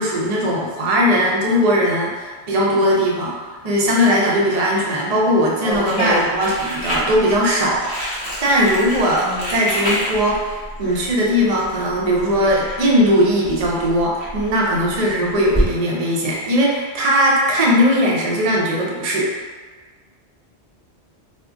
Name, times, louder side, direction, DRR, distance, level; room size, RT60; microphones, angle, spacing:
voice 1, 0.0-10.5 10.8-19.3, equal, 45° right, -4 dB, 0.5 m, -19 dB
voice 2, 5.6-6.2 9.2-9.6, left 2 dB, 55° left, -5 dB, 0.8 m, -25 dB
Crumpling crinkling, 5.7-15.7, equal, 10° left, 0.7 m, -29 dB
2.3 x 2.1 x 3.6 m, 1.5 s
omnidirectional pair, 1.1 m